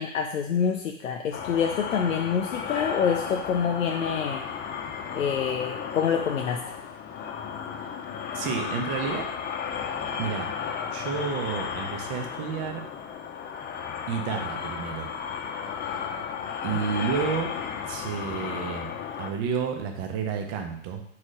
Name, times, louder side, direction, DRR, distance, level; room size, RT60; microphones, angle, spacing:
voice 1, 0.0-4.4 5.1-6.6, left 7 dB, 85° left, 3 dB, 0.7 m, -26 dB
sound 1, 1.3-19.3, left 7 dB, 25° left, 0.9 m, -34 dB
voice 2, 8.3-9.3 10.2-10.5 10.9-12.9 14.1-15.1 16.6-17.5 17.8-18.9 19.2-21.0, right 6 dB, 45° right, 3 dB, 1.2 m, -30 dB
4.7 x 4.3 x 5.0 m, 0.68 s
hypercardioid pair, 100°, 39 cm